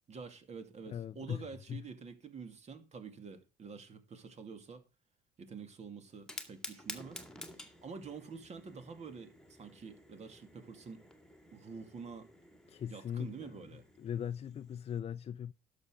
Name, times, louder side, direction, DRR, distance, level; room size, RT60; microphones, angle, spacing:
voice 1, 0.1-4.8 5.4-11.0 11.5-12.3 12.9-13.9, right 5 dB, 40° right, 2.4 m, -48 dB
voice 2, 0.9-1.8 12.7-13.5 14.0-15.5, left 9 dB, 35° left, 0.5 m, -39 dB
Fire, 6.1-15.0, left 1 dB, 5° left, 2.3 m, -51 dB
11.5 x 7.0 x 5.0 m
cardioid pair, 110°, 17 cm